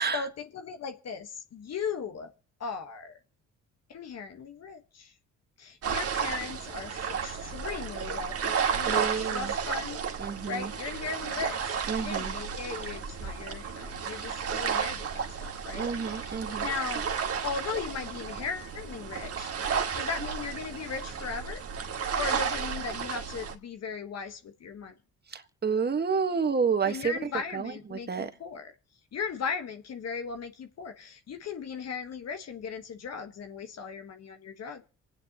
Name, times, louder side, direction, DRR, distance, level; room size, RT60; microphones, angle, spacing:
voice 1, 0.1-2.3 2.6-3.2 3.9-5.1 5.6-10.1 10.5-17.1 17.4-19.5 20.0-21.6 22.2-24.9 26.8-28.7 29.1-34.8, left 6 dB, 55° left, 1.4 m, -37 dB
sound 1, 5.8-23.5, right 6 dB, 50° right, 1.9 m, -33 dB
voice 2, 8.9-9.5 10.2-10.7 11.9-12.3 15.7-16.6 25.3-27.1 27.5-27.7 28.1-28.3, right 5 dB, 35° right, 1.5 m, -29 dB
27.0 x 9.3 x 2.9 m
cardioid pair, 90°, 30 cm